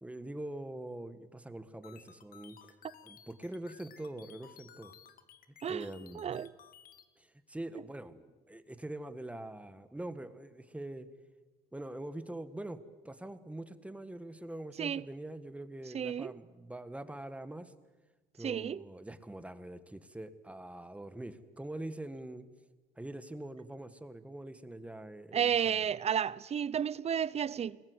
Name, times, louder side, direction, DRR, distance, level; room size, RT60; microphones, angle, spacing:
voice 1, 0.0-2.7 3.0-4.9 5.7-6.3 7.2-11.1 11.7-12.8 13.0-17.7 18.4-22.5 23.0-25.8, right 1 dB, 5° right, 1.5 m, -44 dB
sound 1, 1.8-7.0, left 8 dB, 60° left, 2.0 m, -56 dB
voice 2, 6.1-6.5 14.8-15.0 15.9-16.3 18.4-18.8 25.3-27.8, right 8 dB, 40° right, 0.7 m, -32 dB
28.0 x 21.0 x 8.0 m
cardioid pair, 110°, 17 cm